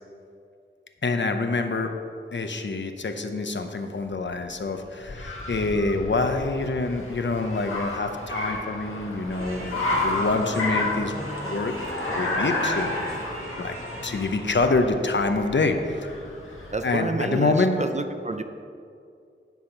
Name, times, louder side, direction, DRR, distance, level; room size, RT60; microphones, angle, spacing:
voice 1, 1.0-1.9 2.3-11.2 11.4-11.7 12.1-13.1 13.6-13.8 14.0-16.1 16.8-17.8, left 3 dB, 65° left, 6 dB, 0.7 m, -26 dB
Car, 4.1-17.0, left 2 dB, 85° left, 1.6 m, -31 dB
sound 1, 9.3-14.4, right 1 dB, 85° right, 1.8 m, -39 dB
voice 2, 16.7-18.4, right 3 dB, 35° right, 8 dB, 0.6 m, -29 dB
9.4 x 5.7 x 5.6 m, 2.4 s
wide cardioid pair, 70°, 21 cm